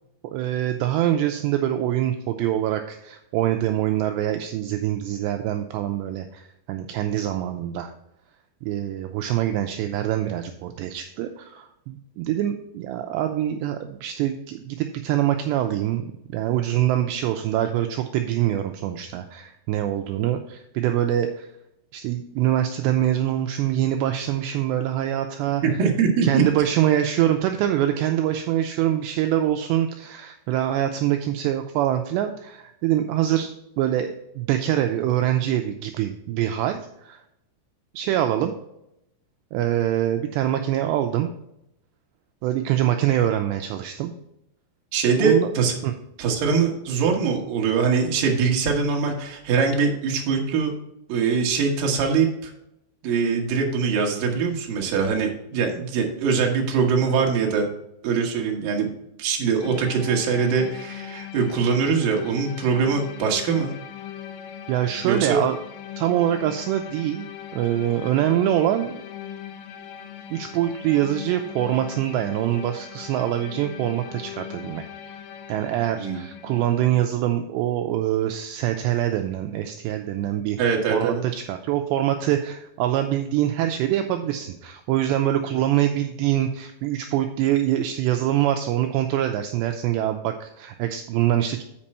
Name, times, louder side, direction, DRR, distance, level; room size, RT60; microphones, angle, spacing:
voice 1, 0.3-7.9 8.6-16.1 16.3-21.5 21.9-25.6 26.2-33.5 33.8-37.2 37.9-38.5 39.5-41.3 42.4-44.1 45.2-45.5 45.8-45.9 64.7-65.6 66.0-67.3 67.5-69.0 70.3-74.8 75.5-91.6, right 12 dB, 90° right, 6 dB, 2.5 m, -24 dB
voice 2, 25.6-26.4 44.9-45.7 46.2-50.7 51.1-52.5 53.0-57.7 58.0-58.9 59.2-63.7 65.0-65.4 76.0-76.2 80.6-81.2, right 5 dB, 65° right, 1 dB, 2.3 m, -22 dB
sound 1, 59.6-77.1, left 9 dB, 75° left, 2.7 m, -40 dB
8.6 x 5.2 x 4.2 m, 0.82 s
omnidirectional pair, 5.5 m